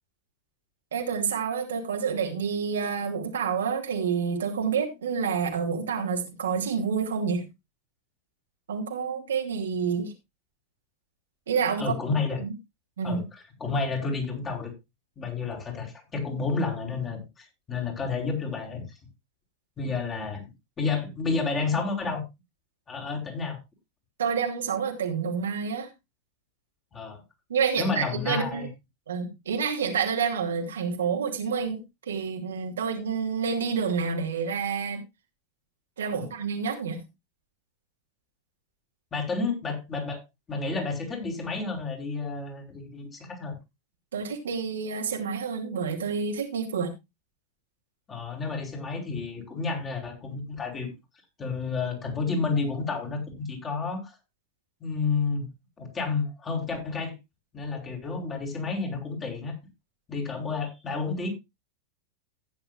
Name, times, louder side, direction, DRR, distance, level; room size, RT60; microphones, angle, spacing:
voice 1, 0.9-7.4 8.7-10.1 11.5-12.0 12.4-12.5 13.0-13.2 24.2-25.9 27.5-28.7 29.1-35.0 36.0-37.0 44.1-46.9, right 6 dB, 65° right, 2.5 m, -28 dB
voice 2, 11.8-12.4 13.0-13.2 13.6-14.7 15.2-18.8 19.8-22.2 22.9-23.6 26.9-27.2 27.8-28.7 36.2-36.3 39.1-40.2 40.5-43.6 48.1-50.9 51.4-54.1 54.8-55.5 55.8-57.1 57.5-59.5 60.1-61.3, left 4 dB, 20° left, 4.6 m, -30 dB
15.0 x 9.7 x 2.5 m
figure-of-eight pair, 90°, 0 cm